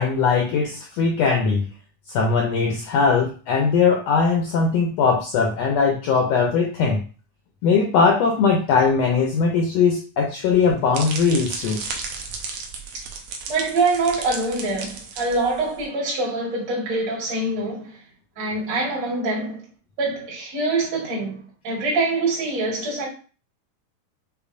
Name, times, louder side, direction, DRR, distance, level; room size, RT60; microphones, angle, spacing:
voice 1, 0.0-1.7 2.1-7.0 7.6-11.8, left 5 dB, 80° left, 1.5 m, -20 dB
sound 1, 10.5-15.8, right 4 dB, 80° right, 1.4 m, -34 dB
voice 2, 13.5-18.0 18.4-19.6 20.0-23.1, right 3 dB, 60° right, 3.0 m, -24 dB
6.7 x 2.5 x 2.6 m
omnidirectional pair, 3.6 m